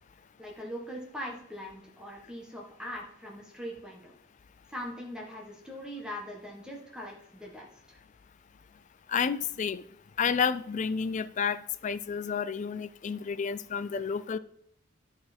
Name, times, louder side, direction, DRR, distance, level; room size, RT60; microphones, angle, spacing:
voice 1, 0.4-4.1 4.7-8.0, equal, 5° right, -2 dB, 1.4 m, -41 dB
voice 2, 9.1-9.8 10.2-14.4, left 6 dB, 40° left, 15 dB, 0.3 m, -30 dB
13.0 x 4.4 x 4.3 m, 0.74 s
head